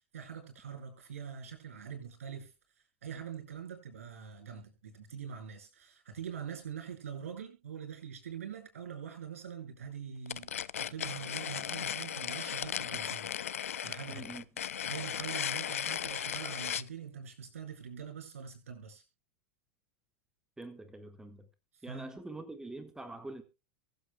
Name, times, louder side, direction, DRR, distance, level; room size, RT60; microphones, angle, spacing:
voice 1, 0.1-2.5 3.0-13.3 13.8-14.3 14.8-19.0 21.9-22.1, right 7 dB, 70° right, 7.4 m, -44 dB
sound 1, 10.3-16.9, left 9 dB, 75° left, 0.5 m, -36 dB
voice 2, 14.1-14.4 20.6-21.4 21.8-23.4, right 2 dB, 10° right, 1.6 m, -44 dB
23.5 x 8.4 x 2.3 m
figure-of-eight pair, 90°, 8 cm